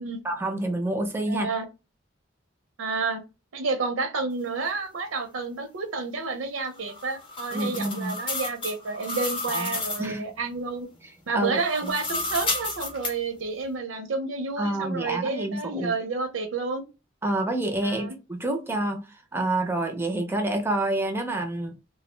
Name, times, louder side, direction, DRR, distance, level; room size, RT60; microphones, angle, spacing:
voice 1, 0.2-1.5 7.5-8.2 9.5-9.7 10.0-10.3 11.3-11.9 14.6-15.9 17.2-19.0 19.3-21.8, right 1 dB, 10° right, 0.4 m, -28 dB
voice 2, 1.3-1.7 2.8-3.2 3.5-10.9 11.3-16.8 17.8-18.2, right 4 dB, 85° right, 0.5 m, -30 dB
sound 1, 6.8-10.1 11.5-13.1, left 2 dB, 25° left, 0.6 m, -32 dB
2.3 x 2.0 x 3.1 m
head